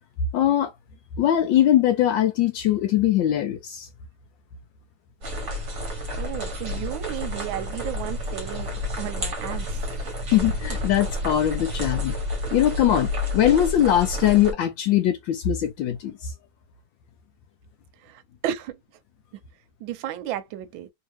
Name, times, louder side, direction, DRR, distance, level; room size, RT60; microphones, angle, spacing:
voice 1, 0.3-0.7 1.2-3.9 10.3-12.1 12.5-16.3, left 11 dB, 75° left, 1.2 m, -21 dB
sound 1, 5.2-14.5, left 1 dB, 45° right, 1.1 m, -30 dB
voice 2, 6.1-9.9 18.0-18.8 19.8-20.9, right 11 dB, 75° right, 1.3 m, -33 dB
3.3 x 2.8 x 3.0 m
omnidirectional pair, 2.4 m